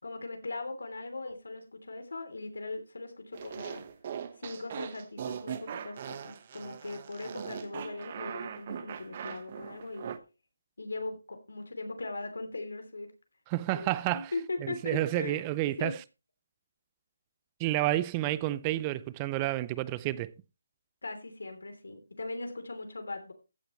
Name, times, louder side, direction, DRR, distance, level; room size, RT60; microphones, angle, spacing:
voice 1, 0.0-3.8 4.4-10.1 10.8-13.1 13.7-15.4 15.8-15.9 21.0-23.3, left 3 dB, 80° left, 3.1 m, -39 dB
sound 1, 3.3-10.2, right 8 dB, 35° right, 1.0 m, -40 dB
voice 2, 13.5-14.3 14.6-16.0 17.6-20.3, right 16 dB, 20° right, 0.4 m, -30 dB
15.0 x 7.9 x 3.1 m
figure-of-eight pair, 160°, 0 cm